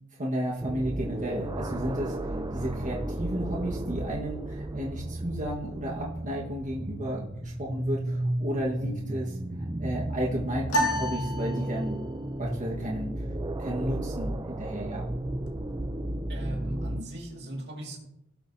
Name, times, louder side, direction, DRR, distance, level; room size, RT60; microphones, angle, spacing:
voice 1, 0.2-9.4 9.8-12.0 12.4-13.3 13.6-15.0, equal, 35° right, -4 dB, 1.6 m, -33 dB
sound 1, 0.6-17.0, right 1 dB, 20° right, 0.5 m, -34 dB
sound 2, 10.7-12.2, equal, 90° left, 2.0 m, -30 dB
voice 2, 16.3-18.1, right 1 dB, 55° right, -1 dB, 2.2 m, -37 dB
18.0 x 6.7 x 2.8 m, 0.81 s
head